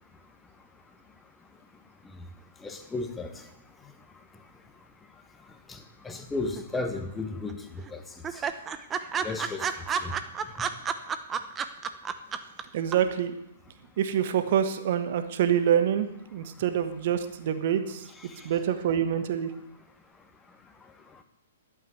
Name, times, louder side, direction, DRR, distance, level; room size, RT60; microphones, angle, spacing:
voice 1, 2.6-3.3 5.7-5.8 6.0-8.0 8.3-8.4 9.2-9.7 10.0-10.1 18.2-18.5, left 3 dB, 10° left, 5 dB, 1.5 m, -34 dB
sound 1, 6.6-7.2 7.5-7.6 7.9-8.0 8.2-12.6 12.9-13.0, right 7 dB, 20° right, 0.8 m, -30 dB
voice 2, 12.7-13.3 14.0-18.1 18.4-19.5, right 9 dB, 50° right, 9 dB, 1.2 m, -26 dB
11.5 x 8.8 x 7.8 m, 0.85 s
figure-of-eight pair, 115°, 0 cm